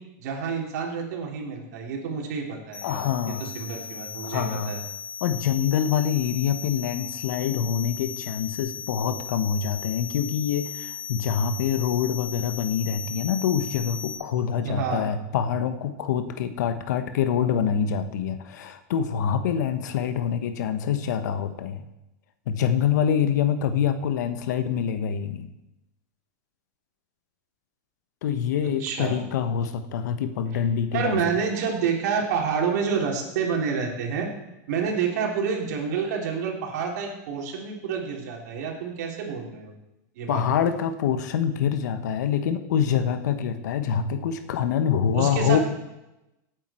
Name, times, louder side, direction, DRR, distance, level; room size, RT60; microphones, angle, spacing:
voice 1, 0.2-4.8 14.6-15.0 28.8-29.2 30.9-34.3 34.7-39.7 40.2-40.4 45.1-45.6, right 6 dB, 70° right, 1 dB, 3.4 m, -28 dB
sound 1, 2.7-14.1, left 8 dB, 25° left, 4.4 m, -37 dB
voice 2, 2.8-3.5 4.2-4.7 5.2-21.8 22.5-25.5 28.2-31.2 40.3-45.6, left 8 dB, 80° left, 10 dB, 1.1 m, -25 dB
17.0 x 8.9 x 4.4 m, 0.94 s
supercardioid pair, 155°, 9 cm